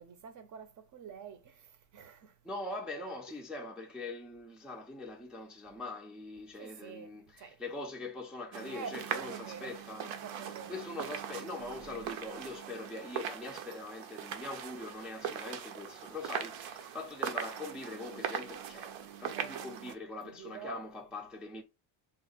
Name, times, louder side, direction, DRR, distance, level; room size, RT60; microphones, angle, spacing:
voice 1, 0.0-2.3 6.6-7.6 8.7-10.8 19.3-19.6 20.2-20.8, right 6 dB, 40° right, 0.6 m, -47 dB
voice 2, 2.4-10.1 10.7-21.6, left 2 dB, ahead, 0.4 m, -43 dB
sound 1, 8.5-19.9, right 8 dB, 75° right, 0.8 m, -40 dB
3.5 x 2.1 x 3.9 m
cardioid pair, 135°, 48 cm